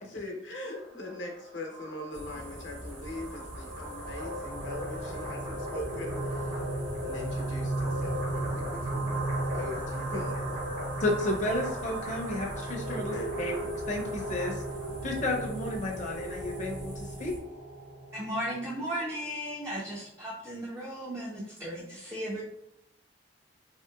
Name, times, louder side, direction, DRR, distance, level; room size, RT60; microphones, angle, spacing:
voice 1, 0.0-6.6 7.0-9.1 9.5-10.4 12.9-13.4, left 1 dB, 90° left, 1 dB, 0.8 m, -41 dB
sound 1, 0.7-16.5, equal, 85° right, 1.4 m, -40 dB
sound 2, 2.1-17.4, equal, 50° right, 0.9 m, -45 dB
sound 3, 4.1-18.7, right 2 dB, 65° right, 0.6 m, -37 dB
voice 2, 11.0-13.5 13.9-14.6 15.0-17.3, left 1 dB, 40° left, -1 dB, 0.5 m, -32 dB
voice 3, 18.1-22.4, equal, 15° right, -4 dB, 0.3 m, -35 dB
3.1 x 2.8 x 2.3 m, 0.80 s
head